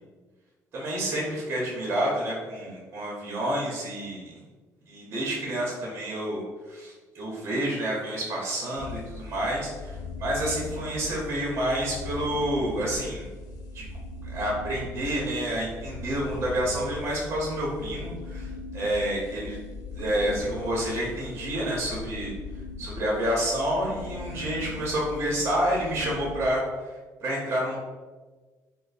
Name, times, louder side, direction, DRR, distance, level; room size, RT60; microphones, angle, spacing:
voice 1, 0.7-4.4 4.9-6.4 6.7-13.3 13.7-13.8 14.2-19.6 19.9-22.3 22.8-26.6 27.2-27.8, right 1 dB, 35° right, -4 dB, 0.7 m, -29 dB
sound 1, 8.8-26.5, left 3 dB, 75° left, 0.4 m, -39 dB
3.1 x 2.0 x 4.0 m, 1.3 s
cardioid pair, 175°, 7 cm